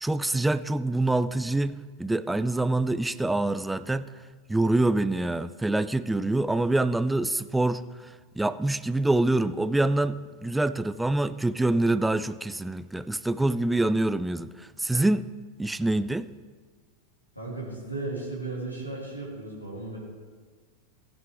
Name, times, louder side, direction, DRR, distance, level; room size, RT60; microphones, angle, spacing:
voice 1, 0.0-4.0 4.5-7.8 8.4-15.2 15.6-16.3, right 2 dB, 5° right, 0.3 m, -25 dB
voice 2, 17.3-20.0, right 2 dB, 90° left, 3.0 m, -35 dB
15.5 x 10.5 x 3.5 m
figure-of-eight pair, 90°, 0 cm